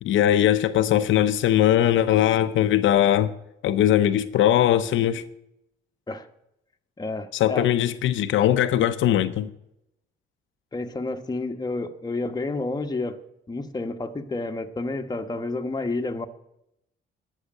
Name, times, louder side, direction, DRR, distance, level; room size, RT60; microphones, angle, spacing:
voice 1, 0.0-3.3 3.6-5.2 7.3-9.5, left 11 dB, 80° left, 0.7 m, -20 dB
voice 2, 7.0-7.7 10.7-13.2 13.5-16.3, left 3 dB, 20° left, 1.2 m, -30 dB
11.5 x 6.5 x 8.9 m
cardioid pair, 90°, 20 cm